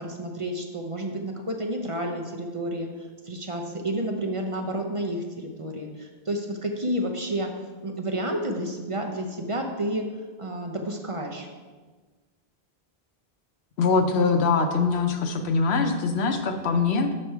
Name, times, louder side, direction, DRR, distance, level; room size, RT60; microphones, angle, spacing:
voice 1, 0.0-2.9 3.2-7.5 7.8-10.1 10.4-11.5, right 1 dB, 35° right, 2 dB, 0.7 m, -30 dB
voice 2, 13.8-17.1, left 4 dB, 90° left, 6 dB, 1.0 m, -23 dB
6.5 x 5.9 x 4.6 m, 1.4 s
omnidirectional pair, 1.1 m